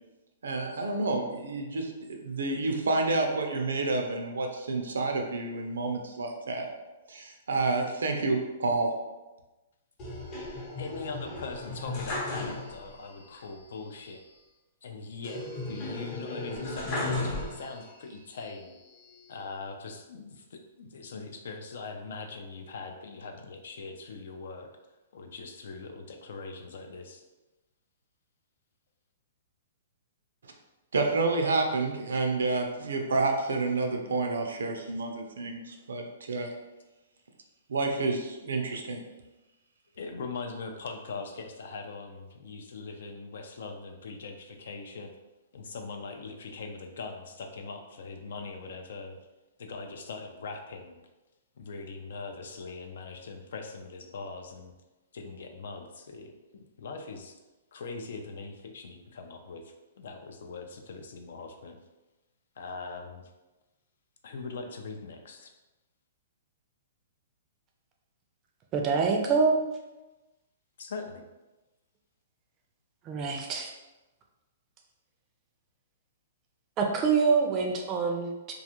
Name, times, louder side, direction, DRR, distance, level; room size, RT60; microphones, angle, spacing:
voice 1, 0.4-6.7 7.1-8.9 30.9-36.5 37.7-39.0, right 3 dB, 90° right, 3 dB, 0.5 m, -29 dB
sound 1, 10.0-13.0 13.3-13.4 15.2-18.0 18.5-19.3, left 2 dB, 35° left, 0.6 m, -35 dB
voice 2, 10.8-14.2 14.8-18.7 19.3-24.7 25.1-27.2 40.0-45.1 45.5-49.2 49.6-51.0 51.6-54.7 55.1-57.3 57.7-61.8 62.6-63.2 64.2-65.5 70.8-71.2, left 4 dB, 70° left, 4 dB, 0.4 m, -41 dB
voice 3, 68.7-69.6 73.0-73.7 76.8-78.5, right 5 dB, 25° right, 2 dB, 0.4 m, -25 dB
2.4 x 2.3 x 2.9 m, 1.1 s
hypercardioid pair, 145°, 0 cm